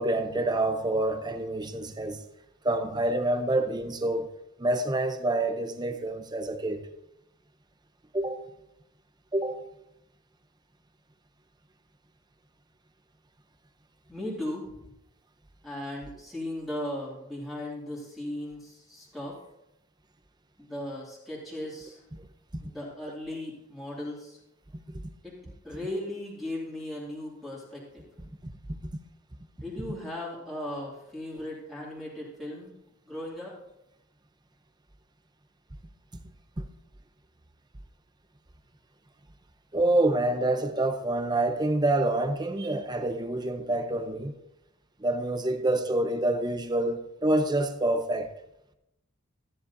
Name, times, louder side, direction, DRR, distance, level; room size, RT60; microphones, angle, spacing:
voice 1, 0.0-2.2 2.6-4.3 4.6-6.8 8.1-8.4 9.3-9.6 36.6-36.7 39.7-44.3 45.0-48.3, right 2 dB, 20° right, 0.7 m, -27 dB
voice 2, 14.1-14.6 15.6-19.4 20.6-22.0 22.6-24.4 25.2-25.4 25.6-28.0 29.6-32.7 33.0-33.5, left 1 dB, ahead, 2.4 m, -37 dB
13.5 x 9.9 x 2.7 m
head